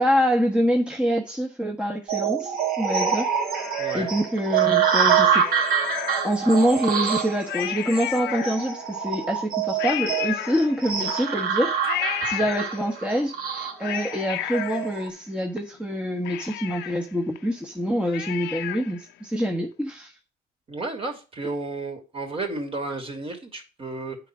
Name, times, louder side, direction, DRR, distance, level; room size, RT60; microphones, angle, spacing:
voice 1, 0.0-3.3 3.9-5.4 6.2-20.1, equal, 5° right, 0 dB, 1.4 m, -25 dB
sound 1, 2.1-15.1, right 7 dB, 55° right, 2.5 m, -25 dB
Cat, 2.9-4.4 5.3-6.7 7.1-7.2 7.4-8.9 9.8-11.1 11.8-13.1 13.6-15.6 15.9-16.0 16.3-19.0 19.4-19.5, left 13 dB, 80° left, 0.9 m, -33 dB
voice 2, 3.8-4.1 12.4-12.5 20.7-24.2, right 2 dB, 35° right, 3 dB, 2.9 m, -32 dB
8.9 x 5.0 x 6.1 m, 0.32 s
cardioid pair, 95°, 17 cm